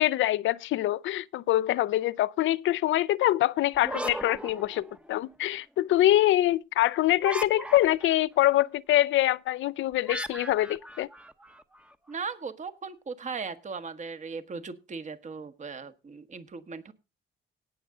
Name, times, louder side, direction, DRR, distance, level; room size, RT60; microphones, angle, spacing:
voice 1, 0.0-11.1, left 14 dB, 75° left, 0.6 m, -24 dB
sound 1, 3.7-5.3 7.2-8.2 10.1-11.9, right 1 dB, 5° right, 1.0 m, -38 dB
voice 2, 12.1-16.9, right 5 dB, 35° right, 1.5 m, -38 dB
18.0 x 6.7 x 3.8 m
cardioid pair, 90°, 20 cm